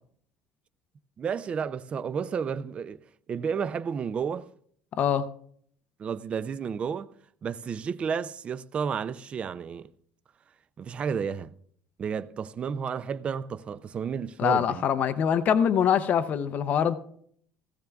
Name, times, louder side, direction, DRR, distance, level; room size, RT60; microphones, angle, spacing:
voice 1, 1.2-3.0 3.3-4.5 6.0-7.1 7.4-9.9 10.8-11.5 12.0-14.9, right 6 dB, 30° right, 0.4 m, -31 dB
voice 2, 4.9-5.3 14.4-16.9, left 8 dB, 45° left, 0.6 m, -24 dB
17.0 x 15.5 x 2.3 m
cardioid pair, 130°, 4 cm